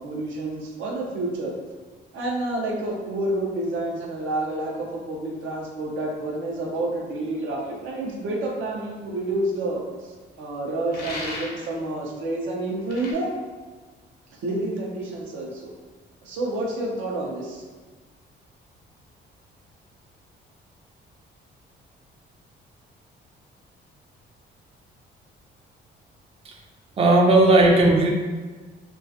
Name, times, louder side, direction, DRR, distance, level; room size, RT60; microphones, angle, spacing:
voice 1, 0.0-1.5 2.1-13.3 14.4-15.7 16.2-17.6, right 2 dB, 80° right, -1 dB, 0.6 m, -29 dB
sound 1, 10.9-11.7 12.9-13.1, left 2 dB, 50° left, 0.6 m, -35 dB
voice 2, 27.0-28.1, right 2 dB, 30° right, 0 dB, 0.4 m, -16 dB
2.3 x 2.3 x 2.5 m, 1.4 s
cardioid pair, 90°, 20 cm